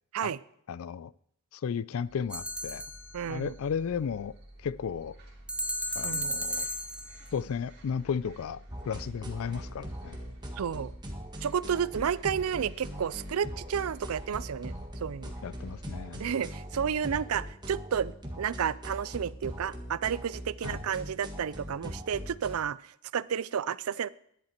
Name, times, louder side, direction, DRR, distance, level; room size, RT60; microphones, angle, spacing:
voice 1, 0.7-1.1 1.5-2.8 3.3-5.2 6.0-6.7 7.3-10.2 15.4-16.2 20.6-20.8, left 6 dB, 70° left, 0.4 m, -34 dB
sound 1, 2.0-17.3, right 1 dB, 50° right, 2.7 m, -51 dB
sound 2, 2.3-3.4 5.5-7.3, equal, 5° right, 0.8 m, -34 dB
voice 2, 3.1-3.5 6.0-6.4 10.6-10.9 11.4-14.7 15.0-15.3 16.2-24.1, right 8 dB, 80° right, 0.4 m, -31 dB
sound 3, 8.7-22.6, equal, 20° right, 1.7 m, -41 dB
11.5 x 10.5 x 4.4 m
head